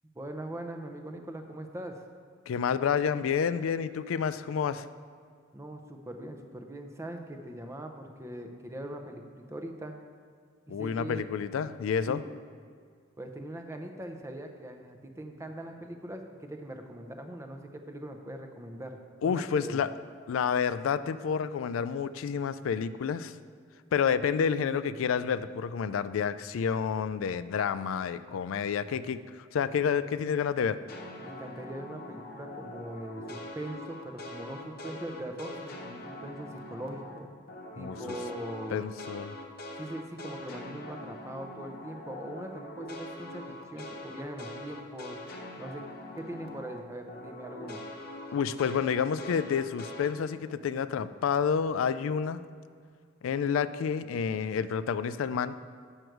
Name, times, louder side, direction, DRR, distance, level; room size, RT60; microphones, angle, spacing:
voice 1, 0.1-2.0 5.5-10.0 10.7-11.2 12.1-12.3 13.2-19.8 31.2-37.3 37.8-38.9 39.8-45.2 45.6-45.8 46.2-47.8, right 1 dB, 15° right, 5 dB, 0.6 m, -41 dB
voice 2, 2.5-4.9 10.7-12.2 19.2-19.9 20.3-23.3 23.9-29.2 29.5-30.8 37.8-38.2 38.7-39.3 48.3-52.4 53.2-55.6, left 7 dB, 80° left, 14 dB, 0.3 m, -29 dB
sound 1, 30.9-37.2 37.5-46.8 47.1-50.1, left 1 dB, 50° left, 0.9 m, -43 dB
7.8 x 6.5 x 4.6 m, 2.1 s
head